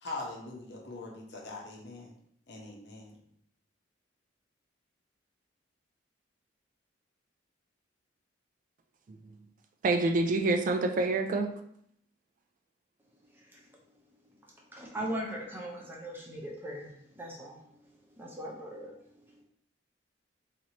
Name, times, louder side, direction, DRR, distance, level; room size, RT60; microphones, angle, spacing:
voice 1, 0.0-2.1 2.5-3.2, left 2 dB, 60° left, -1 dB, 0.8 m, -42 dB
voice 2, 9.8-11.5, right 3 dB, 45° right, 5 dB, 0.3 m, -27 dB
voice 3, 13.3-13.7 14.7-19.4, right 1 dB, 10° right, -2 dB, 0.7 m, -40 dB
4.2 x 2.9 x 2.8 m, 0.68 s
head